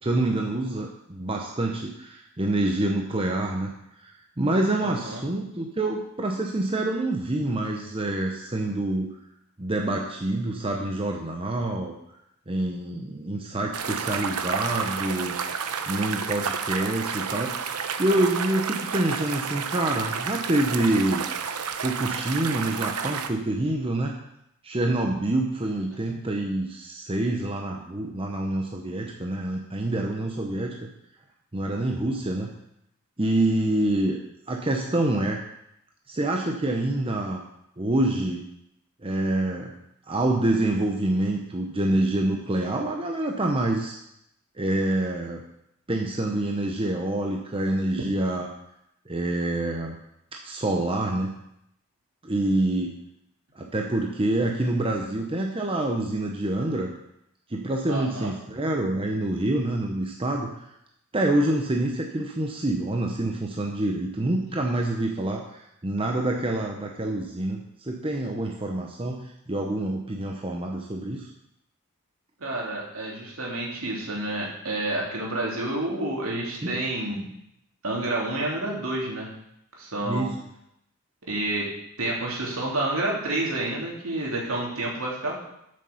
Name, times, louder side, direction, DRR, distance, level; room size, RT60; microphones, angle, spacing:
voice 1, 0.0-3.7 4.0-9.1 9.6-12.0 12.5-15.4 15.9-17.6 18.0-21.2 21.8-24.1 24.6-30.9 31.5-32.5 33.2-34.2 34.5-35.4 36.1-37.4 37.8-38.4 39.0-39.7 40.1-44.0 44.6-45.4 45.9-48.5 49.1-50.0 50.4-51.3 52.2-53.0 53.5-56.9 57.5-60.7 61.1-71.3 76.6-76.8 80.0-80.4, right 1 dB, 25° right, 1 dB, 0.8 m, -26 dB
voice 2, 4.8-5.2 57.9-58.3 72.4-77.3 77.8-79.3 79.7-80.3 81.3-81.7 82.0-85.4, right 2 dB, 65° right, -3 dB, 3.1 m, -29 dB
sound 1, 13.7-23.3, right 6 dB, 85° right, 0.8 m, -30 dB
8.4 x 6.5 x 7.0 m, 0.79 s
head